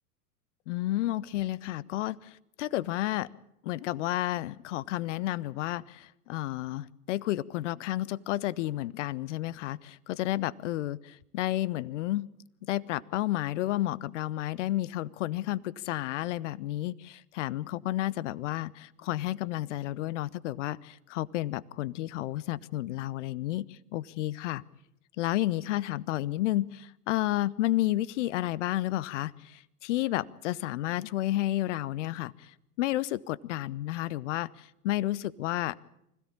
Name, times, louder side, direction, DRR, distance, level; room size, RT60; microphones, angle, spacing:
voice 1, 0.7-3.3 3.6-12.3 12.7-24.6 25.2-35.8, left 15 dB, 50° left, 21 dB, 0.9 m, -31 dB
25.0 x 16.5 x 8.7 m, 0.79 s
figure-of-eight pair, 100°, 47 cm